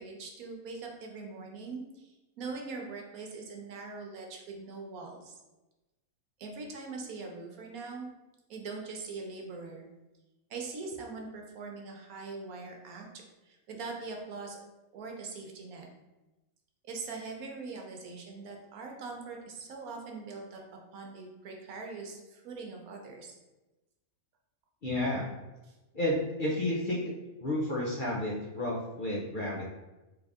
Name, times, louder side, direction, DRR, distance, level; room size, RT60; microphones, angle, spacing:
voice 1, 0.0-5.4 6.4-8.1 8.5-9.9 10.5-13.1 13.4-14.6 14.9-15.9 16.8-20.6 20.9-23.3 25.7-25.8, right 4 dB, 75° right, 1 dB, 1.2 m, -42 dB
voice 2, 24.8-25.3 25.9-27.1 27.4-29.7, left 1 dB, 45° left, -5 dB, 0.7 m, -31 dB
3.8 x 3.4 x 3.5 m, 1.1 s
omnidirectional pair, 1.5 m